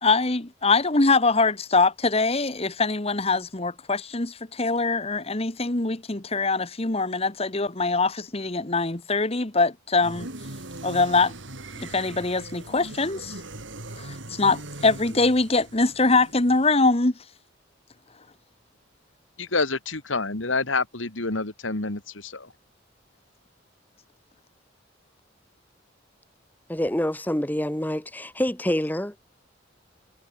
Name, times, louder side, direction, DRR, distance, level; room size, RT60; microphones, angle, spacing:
voice 1, 0.0-10.3 10.8-11.3 11.8-13.4 14.0-17.1, left 3 dB, 30° left, 1.5 m, -23 dB
sound 1, 10.0-16.9, right 2 dB, 75° right, 3.5 m, -40 dB
voice 2, 19.4-22.5, left 3 dB, 85° left, 2.6 m, -28 dB
voice 3, 26.7-29.2, left 1 dB, 10° left, 1.1 m, -26 dB
head